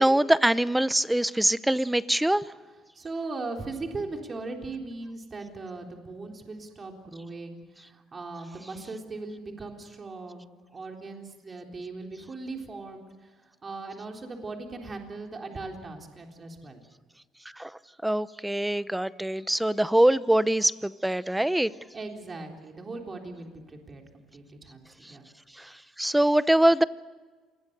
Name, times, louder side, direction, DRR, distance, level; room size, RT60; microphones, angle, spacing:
voice 1, 0.0-2.4 17.6-17.7 18.0-21.7 25.6-26.8, right 1 dB, 5° right, 0.7 m, -23 dB
voice 2, 2.9-16.8 21.9-25.3, right 3 dB, 30° right, 3.8 m, -39 dB
27.5 x 21.0 x 6.8 m
cardioid pair, 110°, 0 cm